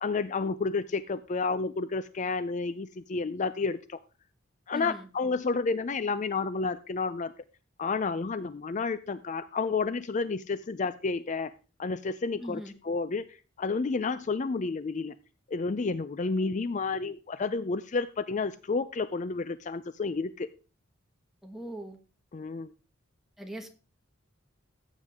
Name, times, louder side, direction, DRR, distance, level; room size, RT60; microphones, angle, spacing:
voice 1, 0.0-4.0 4.7-7.3 7.8-11.5 11.8-15.1 15.5-20.5 22.3-22.7, left 4 dB, 35° left, 14 dB, 0.4 m, -30 dB
voice 2, 4.7-5.1 12.4-12.7 21.4-22.0 23.4-23.7, equal, ahead, 3 dB, 1.6 m, -40 dB
14.5 x 8.4 x 3.6 m, 0.35 s
head